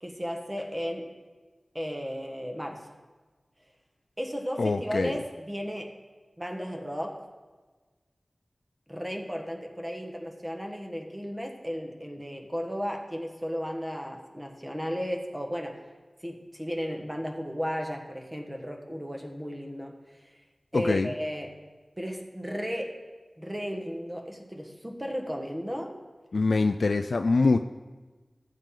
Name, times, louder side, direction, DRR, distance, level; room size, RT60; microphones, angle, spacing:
voice 1, 0.0-1.1 1.7-2.9 4.2-5.9 6.4-7.3 8.9-15.8 16.2-20.0 20.2-20.3 20.7-21.6 22.0-23.0 23.4-26.0, equal, 15° right, 2 dB, 1.4 m, -34 dB
voice 2, 4.6-5.2 20.7-21.1 26.3-27.6, left 3 dB, 80° left, 8 dB, 0.3 m, -24 dB
14.0 x 7.5 x 3.9 m, 1.3 s
wide cardioid pair, 50°, 0 cm